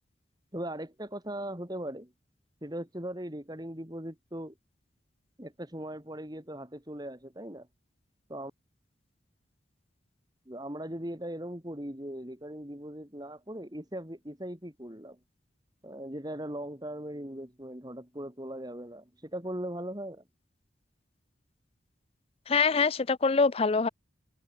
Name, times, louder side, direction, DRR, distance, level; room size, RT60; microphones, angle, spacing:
voice 1, 0.5-2.1 2.6-4.5 5.4-7.7 8.3-8.5 10.5-15.2 15.8-20.2, right 1 dB, 20° right, 3.6 m, -39 dB
voice 2, 22.5-23.9, left 4 dB, 30° left, 0.5 m, -24 dB
head